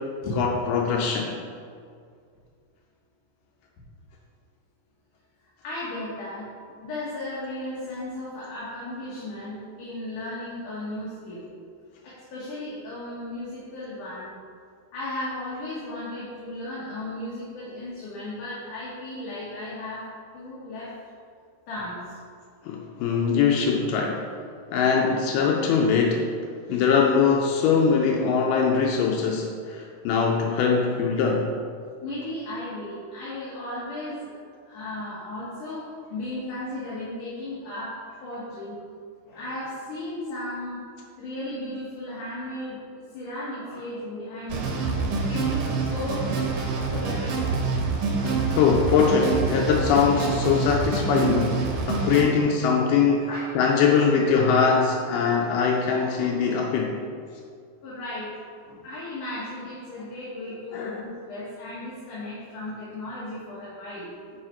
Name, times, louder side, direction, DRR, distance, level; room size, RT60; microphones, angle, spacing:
voice 1, 0.4-1.3 22.6-24.2 24.7-26.3 26.7-31.5 45.4-45.5 48.5-53.3 53.6-56.9 60.7-60.9, left 6 dB, 90° left, 0 dB, 1.9 m, -22 dB
voice 2, 5.6-11.4 12.0-14.3 14.9-20.0 20.3-20.9 21.7-22.2 32.0-34.3 34.6-37.9 38.2-38.8 39.2-40.8 41.2-42.8 43.1-44.6 45.3-46.4 46.9-47.5 53.3-53.7 57.8-58.3 58.6-64.1, left 1 dB, 65° left, -8 dB, 2.7 m, -35 dB
sound 1, 44.5-52.2, right 4 dB, 70° right, 2.5 m, -26 dB
9.5 x 4.9 x 4.4 m, 2.2 s
omnidirectional pair, 4.5 m